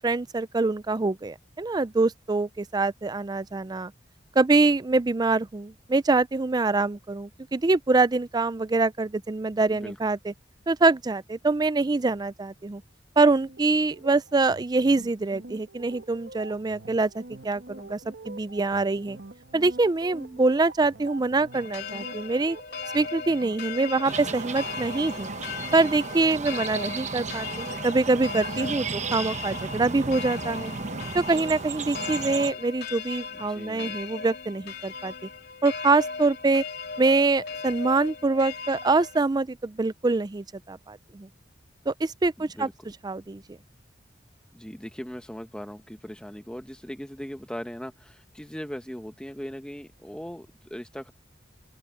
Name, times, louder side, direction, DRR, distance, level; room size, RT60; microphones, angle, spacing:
voice 1, 0.0-3.9 4.4-10.3 10.7-12.8 13.2-18.0 18.3-19.2 19.5-22.6 22.9-25.3 25.7-30.7 31.1-35.1 35.6-36.6 37.0-41.3 41.9-42.7 43.0-43.4, right 3 dB, 20° right, 0.4 m, -24 dB
sound 1, 13.4-32.0, right 2 dB, 75° right, 1.7 m, -45 dB
sound 2, 21.5-39.2, left 5 dB, 60° left, 3.4 m, -38 dB
sound 3, 24.0-32.5, right 4 dB, 40° right, 1.0 m, -35 dB
voice 2, 33.3-34.0 42.4-42.9 44.5-51.1, equal, 5° left, 1.0 m, -39 dB
head